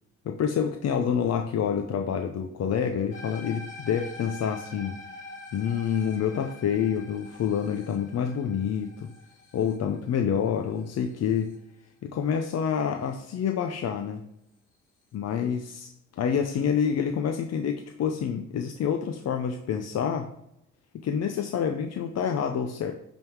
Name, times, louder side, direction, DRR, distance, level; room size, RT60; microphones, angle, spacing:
voice 1, 0.2-5.0 5.5-9.1 9.5-11.5 12.0-14.2 15.1-20.3 20.9-22.9, left 7 dB, 55° left, 5 dB, 0.7 m, -27 dB
sound 1, 3.1-11.5, left 3 dB, 40° left, 2.9 m, -45 dB
9.2 x 3.7 x 4.6 m, 0.82 s
cardioid pair, 90°, 30 cm